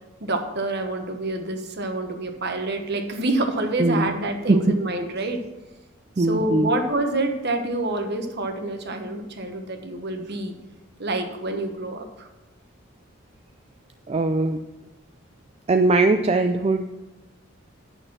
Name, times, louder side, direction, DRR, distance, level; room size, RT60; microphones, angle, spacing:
voice 1, 0.2-5.4 6.2-10.5 11.0-12.3, right 2 dB, 55° right, 5 dB, 1.2 m, -27 dB
voice 2, 3.8-4.1 4.5-4.8 6.2-6.7 14.1-14.6 15.7-16.9, right 2 dB, 30° right, 6 dB, 0.4 m, -20 dB
8.9 x 6.6 x 6.0 m, 1.1 s
head